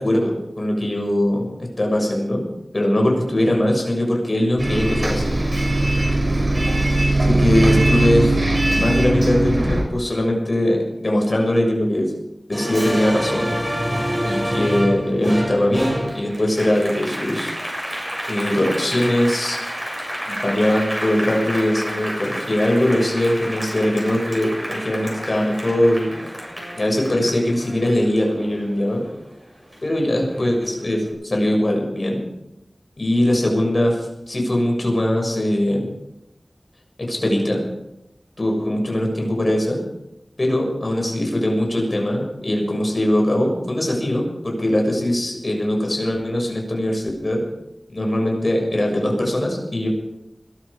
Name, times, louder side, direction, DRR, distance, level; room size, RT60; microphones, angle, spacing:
voice 1, 0.0-1.5 1.8-2.4 2.7-5.3 7.2-12.1 12.5-13.5 14.2-17.5 18.3-19.6 20.3-26.1 26.8-29.0 29.8-32.2 33.0-35.9 37.1-37.6 38.4-39.8 40.4-47.4 47.9-49.9, left 1 dB, 50° left, 0 dB, 6.8 m, -21 dB
Bus, 4.6-9.8, right 1 dB, 50° right, 6.9 m, -19 dB
Applause, 12.5-29.3 29.7-30.9, equal, 15° right, 7.7 m, -29 dB
22.0 x 12.5 x 5.2 m, 0.88 s
wide cardioid pair, 55°, 0 cm